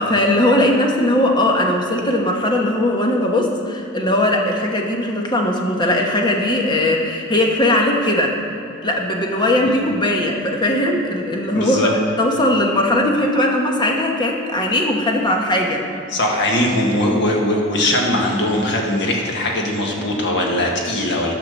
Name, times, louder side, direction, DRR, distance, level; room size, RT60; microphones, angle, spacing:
voice 1, 0.0-8.4 8.8-15.8, left 1 dB, 25° left, 1 dB, 1.2 m, -19 dB
voice 2, 11.5-11.9 16.1-21.3, left 1 dB, 65° left, 0 dB, 1.7 m, -20 dB
10.5 x 5.9 x 6.9 m, 2.8 s
head